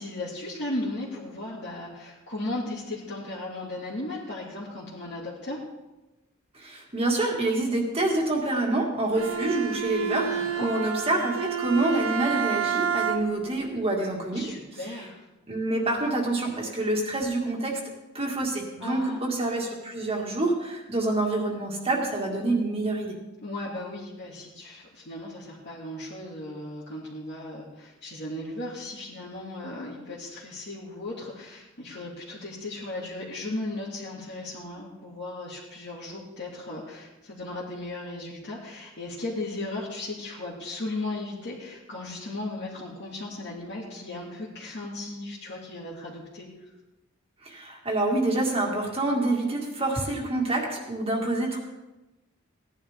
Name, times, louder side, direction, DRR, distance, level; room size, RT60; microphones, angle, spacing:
voice 1, 0.0-5.6 10.2-10.7 14.3-15.2 18.8-19.2 23.4-46.7, left 2 dB, 60° left, -7 dB, 2.3 m, -36 dB
voice 2, 6.5-14.4 14.8-15.1 15.5-17.7 18.1-23.2 47.4-51.6, right 2 dB, 30° right, -1 dB, 2.0 m, -27 dB
Bowed string instrument, 9.1-13.5, right 7 dB, 85° right, 0.9 m, -29 dB
17.0 x 11.0 x 3.6 m, 1.0 s
head